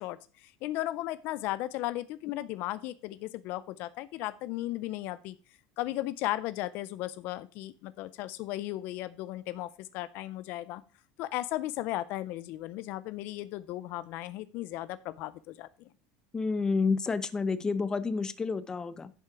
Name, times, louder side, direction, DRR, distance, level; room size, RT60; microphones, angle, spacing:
voice 1, 0.0-5.4 5.8-10.8 11.2-15.7, left 15 dB, 60° left, 16 dB, 0.5 m, -36 dB
voice 2, 16.3-19.1, left 4 dB, 20° left, 14 dB, 0.7 m, -29 dB
10.5 x 5.6 x 4.7 m, 0.38 s
supercardioid pair, 135°, 4 cm